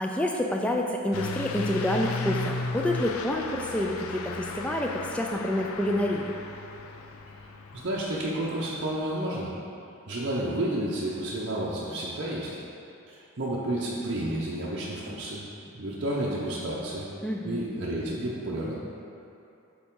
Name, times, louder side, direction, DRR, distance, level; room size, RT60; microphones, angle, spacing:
voice 1, 0.0-6.3 17.2-17.6, left 1 dB, 5° left, 1 dB, 0.3 m, -28 dB
Truck / Accelerating revving vroom, 1.1-9.1, left 3 dB, 80° left, 0.4 m, -36 dB
voice 2, 7.7-9.5 10.1-12.6 13.1-17.1 17.4-18.7, right 1 dB, 50° right, -7 dB, 0.7 m, -31 dB
7.0 x 4.1 x 3.7 m, 2.7 s
head